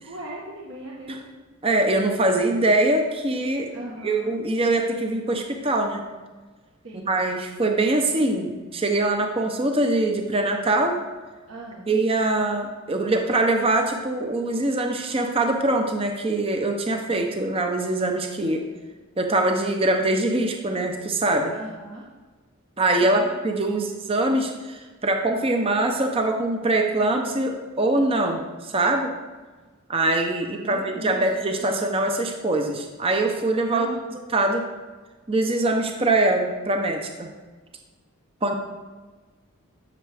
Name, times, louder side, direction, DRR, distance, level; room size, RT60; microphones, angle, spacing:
voice 1, 0.0-1.4 3.7-4.3 6.8-7.1 11.5-11.9 17.0-17.2 21.5-22.0 23.0-23.3 23.7-23.9 30.6-31.2 31.6-31.8 33.7-34.0, right 1 dB, 60° right, -4 dB, 1.2 m, -38 dB
voice 2, 1.6-3.7 4.0-6.0 7.0-11.0 11.9-18.6 19.2-21.5 22.8-29.1 29.9-33.9 34.3-34.6 35.3-37.3 38.4-38.5, right 2 dB, 25° right, 3 dB, 0.7 m, -23 dB
12.5 x 6.5 x 3.4 m, 1.3 s
head